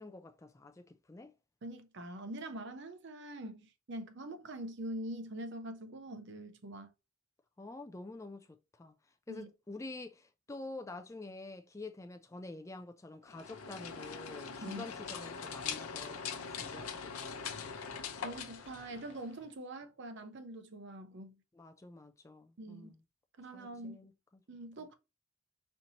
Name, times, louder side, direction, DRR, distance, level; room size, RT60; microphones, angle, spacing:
voice 1, 0.0-1.3 7.6-8.5 8.7-8.9 9.3-17.9 21.5-23.0 23.5-24.4, left 2 dB, 15° left, 0.3 m, -48 dB
voice 2, 1.6-6.9 9.3-9.5 14.6-14.9 18.2-21.4 22.6-23.0 23.4-24.0 24.5-24.9, right 1 dB, 55° right, 0.6 m, -44 dB
sound 1, 13.3-19.4, left 6 dB, 85° left, 0.7 m, -42 dB
4.4 x 2.7 x 2.8 m
head